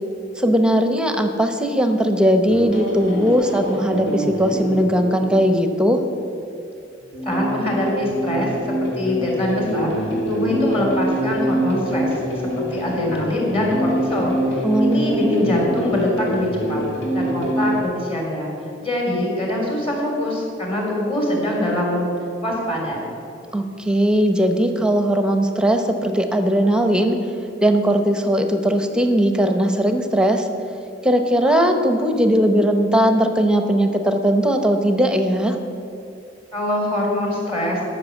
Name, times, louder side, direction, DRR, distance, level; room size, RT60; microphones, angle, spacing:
voice 1, 0.4-6.0 14.6-15.6 23.5-27.2 27.6-30.5 31.0-35.6, equal, 5° right, 6 dB, 0.8 m, -19 dB
sound 1, 2.5-6.3 7.1-17.8, equal, 80° left, 2.8 m, -25 dB
voice 2, 7.2-8.5 8.8-12.2 12.6-16.8 17.1-18.5 18.8-22.1 22.4-23.1 36.5-37.9, left 1 dB, 30° left, -2 dB, 3.6 m, -23 dB
13.0 x 6.4 x 8.4 m, 2.6 s
head